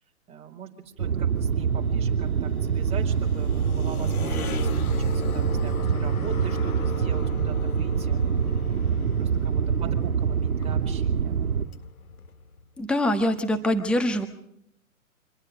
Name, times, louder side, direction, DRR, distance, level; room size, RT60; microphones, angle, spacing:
voice 1, 0.3-0.7 1.0-8.2 9.2-11.5, right 7 dB, 15° right, 0 dB, 4.2 m, -42 dB
sound 1, 1.0-11.7, right 7 dB, 75° right, 1.7 m, -25 dB
sound 2, 1.1-12.7, left 5 dB, 80° left, 1.9 m, -38 dB
voice 2, 12.8-14.3, left 1 dB, ahead, 7 dB, 1.3 m, -24 dB
27.0 x 21.0 x 5.2 m, 0.72 s
hypercardioid pair, 140°, 43 cm